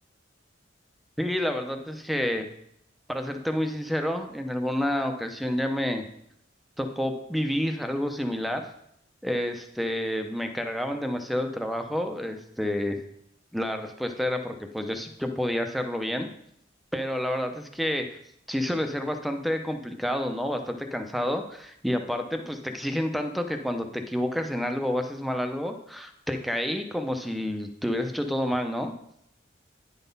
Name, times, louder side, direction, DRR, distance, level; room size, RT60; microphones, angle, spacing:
voice 1, 1.2-2.5 3.1-6.0 6.8-8.7 9.2-13.0 13.5-16.3 16.9-18.2 18.5-28.9, left 1 dB, ahead, 5 dB, 0.6 m, -29 dB
10.0 x 4.0 x 5.3 m, 0.74 s
head